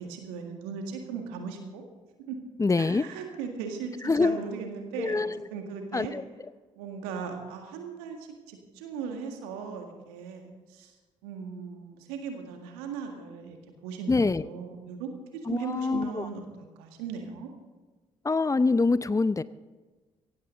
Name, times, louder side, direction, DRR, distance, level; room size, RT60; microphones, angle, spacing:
voice 1, 0.0-1.8 2.3-2.4 2.7-6.1 6.8-10.9 11.2-13.6 13.8-17.5, right 6 dB, 75° right, 4 dB, 1.9 m, -38 dB
voice 2, 2.6-3.0 4.0-4.4 5.0-5.5 5.9-6.2 14.1-14.5 15.5-16.3 18.2-19.4, left 3 dB, 20° left, 17 dB, 0.6 m, -25 dB
17.0 x 15.5 x 4.0 m, 1.3 s
figure-of-eight pair, 40°, 16 cm